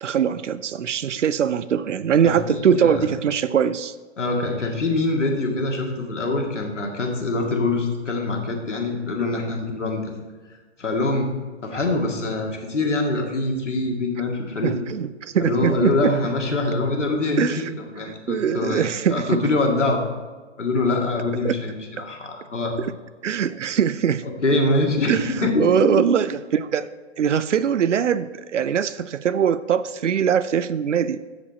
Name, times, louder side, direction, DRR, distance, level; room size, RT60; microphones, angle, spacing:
voice 1, 0.0-3.9 14.6-16.1 17.4-17.7 18.0-19.4 21.4-21.5 22.0-22.1 22.8-22.9 23.2-24.3 25.1-31.2, right 8 dB, 85° right, 15 dB, 0.5 m, -22 dB
voice 2, 2.2-3.0 4.2-10.1 10.8-11.3 11.6-14.8 15.4-20.0 20.6-22.7 24.4-25.9, left 2 dB, 90° left, 0 dB, 2.1 m, -24 dB
15.0 x 5.1 x 4.3 m, 1.4 s
figure-of-eight pair, 130°, 35 cm